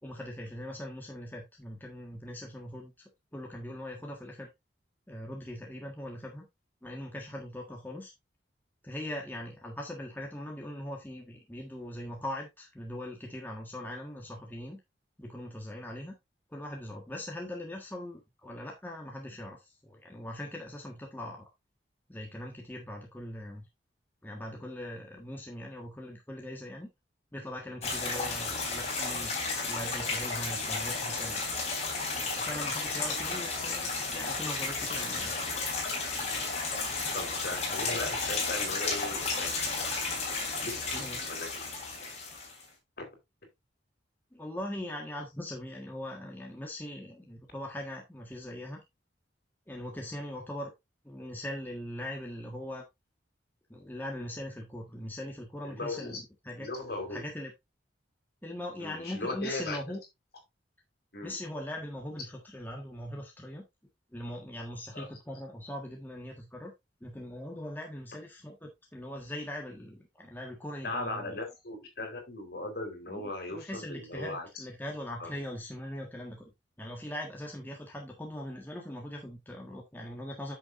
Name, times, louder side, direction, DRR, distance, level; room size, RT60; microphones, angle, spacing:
voice 1, 0.0-4.5 5.1-6.5 6.8-8.1 8.8-14.8 15.2-16.1 16.5-21.5 22.1-23.6 24.2-26.9 27.3-31.4 32.3-35.3 41.0-41.2 44.3-48.8 49.7-50.7 51.0-52.8 53.7-56.7 57.1-57.5 58.4-60.0 61.2-63.6 64.1-66.7 67.0-71.4 73.1-73.2 73.5-76.5 76.8-80.5, left 1 dB, 10° left, 1.5 m, -41 dB
sound 1, 27.8-42.6, left 3 dB, 35° left, 3.9 m, -33 dB
voice 2, 37.1-39.9 40.6-41.7 43.0-43.1 55.6-56.2 56.6-57.2 58.8-60.0 61.1-61.4 64.9-65.1 70.8-74.6 75.2-75.4, left 2 dB, 55° left, 3.6 m, -38 dB
9.5 x 6.6 x 2.6 m
head